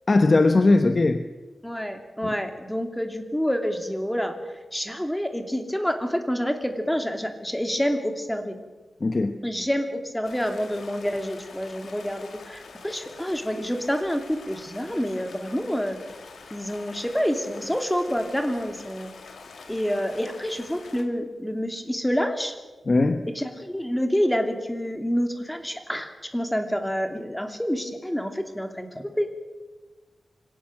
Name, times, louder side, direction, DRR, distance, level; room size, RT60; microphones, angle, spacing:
voice 1, 0.1-1.2 9.0-9.4 22.9-23.2, left 2 dB, 40° left, 8 dB, 1.0 m, -19 dB
voice 2, 1.6-4.4 4.7-8.6 9.4-16.0 16.5-19.1 19.7-22.5 23.3-29.3, equal, 5° left, 6 dB, 2.8 m, -28 dB
Stream, 10.2-21.0, left 4 dB, 90° left, 2.5 m, -46 dB
25.0 x 17.0 x 7.6 m, 1.2 s
wide cardioid pair, 110°, 0 cm